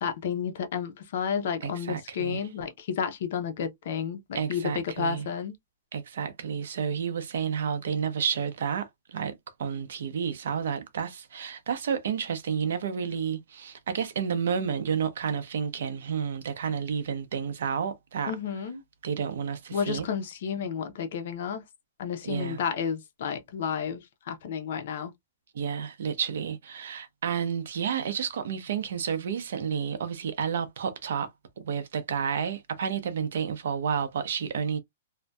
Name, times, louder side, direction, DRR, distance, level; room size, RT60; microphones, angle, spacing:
voice 1, 0.0-5.5 18.3-18.8 19.7-21.6 22.0-24.0 24.3-25.1, left 7 dB, 55° left, 0.6 m, -31 dB
voice 2, 1.6-2.5 4.3-5.3 5.9-18.4 19.0-20.1 22.2-22.6 25.5-31.3 31.6-34.8, right 7 dB, 70° right, 0.6 m, -30 dB
2.6 x 2.1 x 2.2 m
hypercardioid pair, 170°, 0 cm